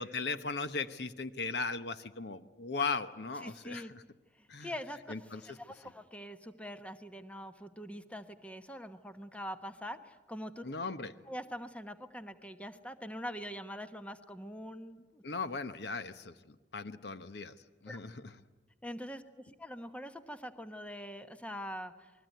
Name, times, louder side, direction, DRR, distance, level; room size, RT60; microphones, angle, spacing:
voice 1, 0.0-4.0 4.5-4.7 5.1-5.4 10.6-11.1 15.2-17.5 17.8-18.2, left 4 dB, 65° left, 11 dB, 1.0 m, -37 dB
voice 2, 3.4-3.9 4.4-10.6 11.3-15.2 17.9-18.0 18.8-22.1, equal, 5° left, 9 dB, 1.1 m, -44 dB
28.5 x 21.5 x 9.2 m, 1.2 s
head